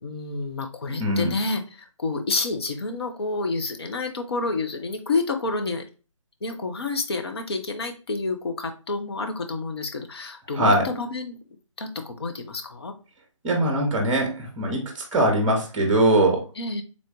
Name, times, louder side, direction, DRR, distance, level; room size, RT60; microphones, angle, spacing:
voice 1, 0.0-5.8 6.4-11.4 11.8-12.9 16.6-16.8, left 3 dB, 50° left, 5 dB, 0.7 m, -29 dB
voice 2, 1.0-1.3 10.5-10.9 13.4-14.8 15.1-16.4, right 1 dB, 15° right, 2 dB, 0.8 m, -21 dB
3.5 x 2.5 x 3.7 m, 0.34 s
figure-of-eight pair, 145°, 17 cm